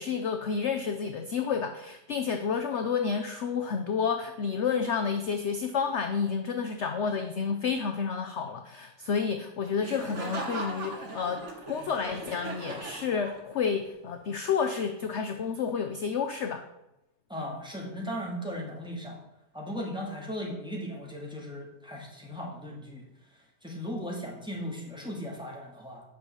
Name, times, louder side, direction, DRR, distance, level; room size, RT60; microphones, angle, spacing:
voice 1, 0.0-16.7, left 6 dB, 55° left, 6 dB, 0.9 m, -30 dB
Laughter, 9.8-13.7, right 2 dB, 50° right, 1.8 m, -39 dB
voice 2, 17.3-19.2 19.5-23.0 23.6-26.0, equal, 5° right, -2 dB, 2.3 m, -37 dB
9.7 x 5.9 x 6.9 m, 0.91 s
omnidirectional pair, 1.7 m